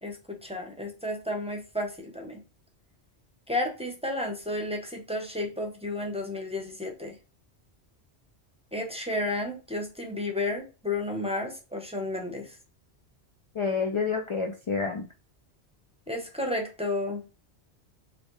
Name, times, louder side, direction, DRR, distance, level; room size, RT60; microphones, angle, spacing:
voice 1, 0.0-2.4 3.5-7.2 8.7-12.6 16.1-17.2, left 2 dB, 5° right, 1 dB, 0.7 m, -32 dB
voice 2, 13.6-15.0, left 5 dB, 55° left, 3 dB, 0.3 m, -28 dB
4.0 x 3.1 x 3.1 m, 0.33 s
omnidirectional pair, 1.2 m